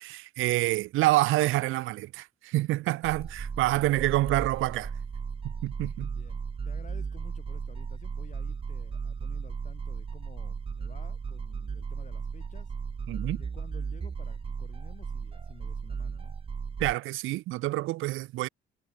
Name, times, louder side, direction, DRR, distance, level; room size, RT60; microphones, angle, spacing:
voice 1, 0.0-4.9 5.6-6.1 13.1-13.4 16.8-18.5, right 17 dB, 90° right, 0.7 m, -27 dB
sound 1, 3.0-16.9, right 6 dB, 30° right, 0.6 m, -36 dB
voice 2, 6.2-12.7 13.3-16.3, left 5 dB, 40° left, 6.8 m, -53 dB
cardioid pair, 90°, 20 cm